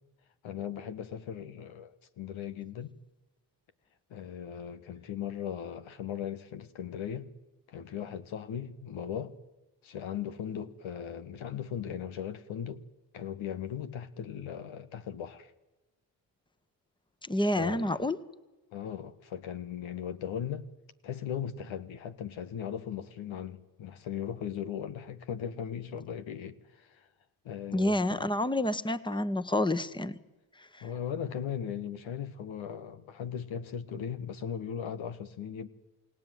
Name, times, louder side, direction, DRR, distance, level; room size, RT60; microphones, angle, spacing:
voice 1, 0.4-2.9 4.1-7.3 7.7-9.4 9.8-12.8 13.1-15.5 17.4-18.0 18.7-20.7 21.0-27.1 27.4-28.3 30.8-35.7, left 8 dB, 70° left, 1.5 m, -38 dB
voice 2, 17.2-18.2 27.7-30.2 30.6-30.8, left 1 dB, 10° left, 1.5 m, -29 dB
29.0 x 17.5 x 9.4 m
supercardioid pair, 50°, 49 cm